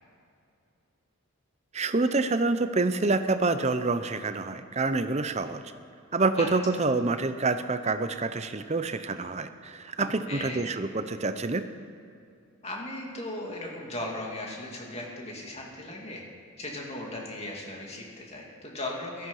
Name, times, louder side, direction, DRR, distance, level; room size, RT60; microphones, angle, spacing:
voice 1, 1.7-5.6 6.1-11.7, right 3 dB, 30° right, 10 dB, 0.6 m, -27 dB
voice 2, 10.0-10.7 12.6-16.2 16.6-19.3, left 1 dB, 30° left, -2 dB, 2.6 m, -37 dB
17.0 x 13.5 x 5.6 m, 2.5 s
head